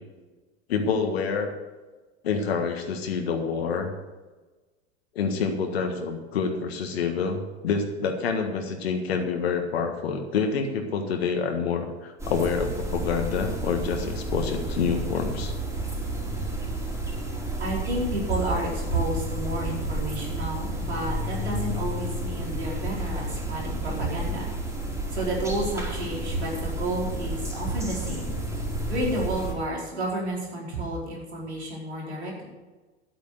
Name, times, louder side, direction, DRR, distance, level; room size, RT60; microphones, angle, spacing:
voice 1, 0.7-1.5 2.2-3.9 5.1-15.5 27.0-27.1, left 5 dB, 65° left, 4 dB, 1.6 m, -27 dB
sound 1, 12.2-29.5, right 1 dB, 10° right, 3.7 m, -31 dB
voice 2, 17.6-24.4 25.1-28.4 28.9-32.5, right 1 dB, 75° right, -3 dB, 4.6 m, -31 dB
11.5 x 8.5 x 6.5 m, 1.2 s
figure-of-eight pair, 85°, 33 cm